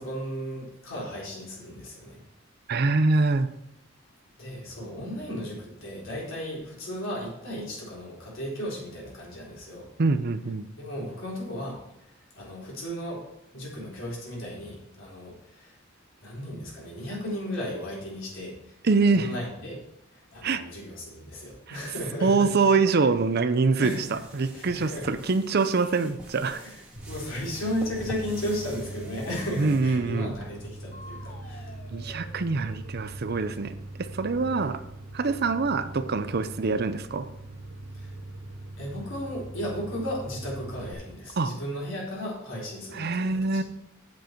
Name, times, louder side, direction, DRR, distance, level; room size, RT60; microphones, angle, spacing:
voice 1, 0.0-2.2 4.4-9.9 10.8-11.8 12.4-13.2 13.5-15.8 16.2-18.8 19.0-19.8 20.1-22.7 23.8-24.2 24.5-25.2 26.6-31.8 34.4-34.7 37.9-38.1 38.8-43.6, equal, 70° left, -5 dB, 4.0 m, -35 dB
voice 2, 2.7-3.5 10.0-10.7 18.8-19.3 20.4-20.6 21.7-21.8 22.2-26.6 29.6-30.3 31.9-34.8 35.1-37.3 41.4-41.5 42.9-43.6, right 4 dB, 50° right, 11 dB, 0.6 m, -24 dB
sound 1, 23.8-29.8, right 1 dB, 5° right, 2.0 m, -46 dB
sound 2, 27.0-40.9, right 2 dB, 80° right, 1.9 m, -41 dB
sound 3, 27.8-29.6 30.9-33.0, left 2 dB, 40° left, 1.1 m, -49 dB
9.3 x 7.6 x 4.6 m, 0.82 s
head